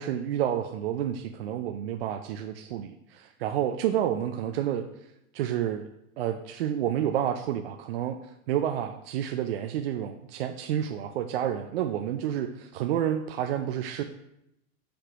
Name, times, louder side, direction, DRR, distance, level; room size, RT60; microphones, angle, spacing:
voice 1, 0.0-4.9 5.3-5.9 6.2-8.2 8.5-14.0, right 10 dB, 45° right, 6 dB, 0.4 m, -29 dB
7.6 x 5.0 x 2.9 m, 0.82 s
hypercardioid pair, 125°, 44 cm